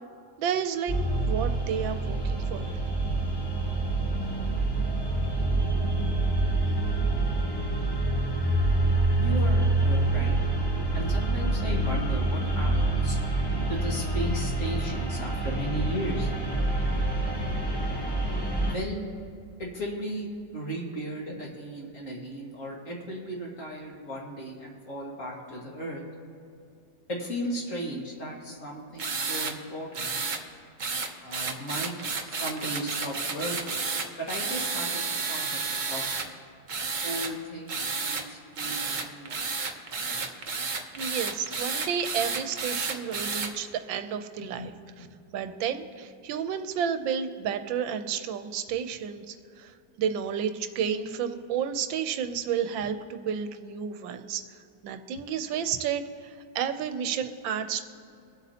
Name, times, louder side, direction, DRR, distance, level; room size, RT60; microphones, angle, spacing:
voice 1, 0.4-0.9 1.3-2.7 40.9-45.1 45.3-49.7 50.0-54.4 54.8-56.0 56.5-57.8, right 7 dB, 85° right, 9 dB, 1.4 m, -31 dB
sound 1, 0.9-18.7, right 2 dB, 20° left, 0.6 m, -26 dB
voice 2, 9.2-10.4 10.9-13.2 13.7-16.3 18.7-19.0 19.6-20.3 20.5-26.0 27.1-30.1 31.2-31.9 32.2-33.6 34.2-36.3 37.0-39.7 40.0-40.2 44.4-45.0, right 1 dB, 45° left, -2 dB, 2.2 m, -36 dB
sound 2, 29.0-29.5 29.9-30.4 30.8-36.3 36.7-37.3 37.7-38.2 38.6-43.5, right 4 dB, 45° right, 0.6 m, -31 dB
22.5 x 8.2 x 2.8 m, 2.5 s
omnidirectional pair, 2.0 m